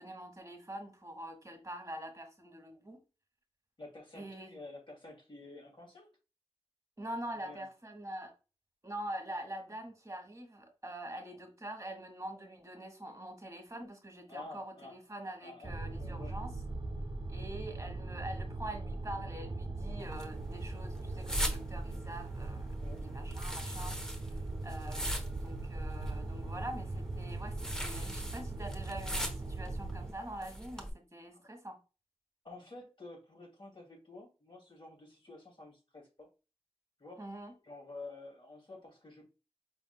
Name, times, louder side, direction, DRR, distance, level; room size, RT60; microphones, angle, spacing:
voice 1, 0.0-3.0 4.1-4.5 7.0-8.3 8.8-16.5 17.3-22.7 23.0-24.0 24.2-24.3 24.6-31.8 37.2-37.5, right 1 dB, 30° right, 1.6 m, -44 dB
voice 2, 3.8-6.1 7.4-7.7 14.3-14.9 15.4-16.4 22.8-23.1 31.3-31.4 32.4-36.3 37.0-37.3 37.6-39.2, left 2 dB, 50° left, 2.8 m, -50 dB
sound 1, 15.6-30.1, right 2 dB, 50° right, 0.7 m, -40 dB
sound 2, 20.0-30.9, equal, 5° left, 1.1 m, -41 dB
5.9 x 3.6 x 2.3 m
wide cardioid pair, 60°, 11 cm